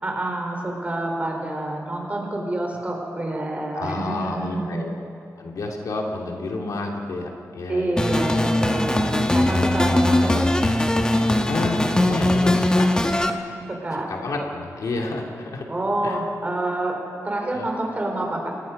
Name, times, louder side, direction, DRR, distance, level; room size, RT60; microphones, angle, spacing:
voice 1, 0.0-4.9 7.7-10.4 13.7-14.1 15.7-17.0 17.2-18.5, right 1 dB, 25° right, 0 dB, 4.8 m, -27 dB
voice 2, 3.7-5.0 5.4-8.1 11.5-12.9 14.1-15.6 16.0-16.2 17.5-17.7, left 3 dB, 80° left, 0 dB, 2.9 m, -30 dB
sound 1, 8.0-13.3, left 1 dB, 15° left, 1.4 m, -20 dB
29.0 x 20.5 x 5.5 m, 2.7 s
wide cardioid pair, 150°, 6 cm